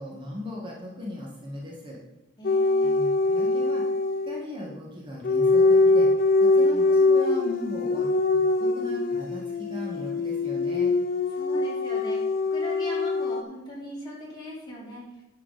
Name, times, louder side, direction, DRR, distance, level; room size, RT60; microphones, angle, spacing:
voice 1, 0.0-2.0 2.8-3.8 4.2-6.1 6.4-8.1 8.3-10.9, equal, 25° right, -3 dB, 1.6 m, -37 dB
sound 1, 2.4-4.4 5.2-13.4, left 3 dB, 50° left, 0.5 m, -23 dB
voice 2, 2.4-2.9 6.5-6.9 11.3-12.2 12.5-15.0, left 1 dB, 25° left, -5 dB, 3.1 m, -39 dB
10.0 x 7.2 x 4.1 m, 0.94 s
head